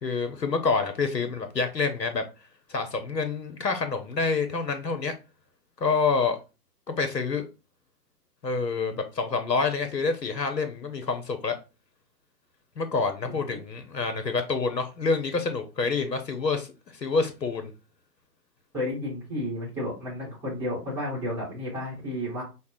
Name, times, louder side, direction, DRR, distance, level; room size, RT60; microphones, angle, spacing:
voice 1, 0.0-2.2 2.7-5.1 5.8-6.4 6.9-7.4 8.4-11.6 12.8-16.7 16.9-17.7, left 4 dB, 85° left, 0.8 m, -27 dB
voice 2, 13.2-13.6 18.7-22.4, left 1 dB, 5° right, 0.8 m, -32 dB
5.3 x 2.1 x 2.6 m
figure-of-eight pair, 125°, 49 cm